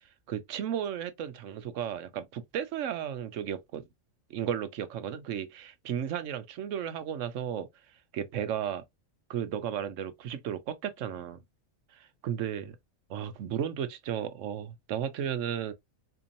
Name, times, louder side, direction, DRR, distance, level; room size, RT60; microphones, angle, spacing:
voice 1, 0.3-3.9 4.3-7.7 8.1-8.8 9.3-11.4 11.9-12.8 13.1-15.7, right 9 dB, 70° right, 0.9 m, -34 dB
4.4 x 2.8 x 2.5 m
omnidirectional pair, 1.4 m